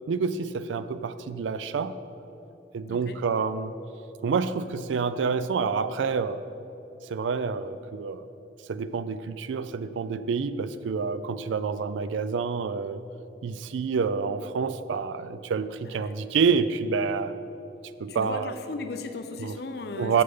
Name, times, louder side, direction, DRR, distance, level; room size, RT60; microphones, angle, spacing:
voice 1, 0.1-2.0 2.7-3.7 4.2-6.4 7.0-8.3 8.7-13.0 13.4-17.3 18.0-18.6 19.4-19.6 20.0-20.2, right 5 dB, 85° right, 13 dB, 0.4 m, -28 dB
voice 2, 18.1-20.2, left 3 dB, 55° left, 8 dB, 0.5 m, -36 dB
6.8 x 6.7 x 5.4 m, 3.0 s
head